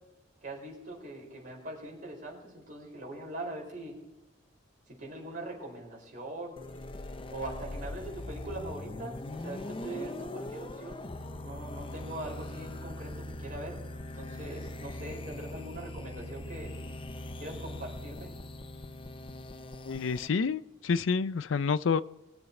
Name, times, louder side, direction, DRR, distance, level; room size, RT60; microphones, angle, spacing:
voice 1, 0.4-4.0 4.9-6.6 7.3-11.1 11.4-13.8 14.1-16.7 17.4-18.3, right 1 dB, 45° right, -2 dB, 4.5 m, -42 dB
sound 1, 6.6-20.3, left 1 dB, 25° left, 0.6 m, -41 dB
voice 2, 19.8-22.0, left 5 dB, 80° left, 16 dB, 0.4 m, -28 dB
21.5 x 7.1 x 4.3 m, 1.0 s
head